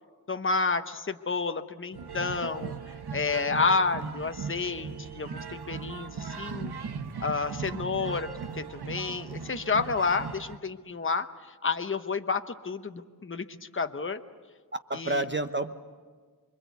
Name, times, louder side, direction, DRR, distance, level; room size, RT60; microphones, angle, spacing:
voice 1, 0.3-2.7 3.1-6.7 7.2-8.3 8.5-14.2 14.9-15.2, left 4 dB, 35° left, 8 dB, 1.0 m, -30 dB
sound 1, 1.9-10.6, right 6 dB, 85° right, 1.1 m, -38 dB
voice 2, 6.8-7.2 14.9-15.7, right 2 dB, 30° right, 8 dB, 1.0 m, -31 dB
26.5 x 23.0 x 8.3 m, 1.5 s
wide cardioid pair, 70°, 38 cm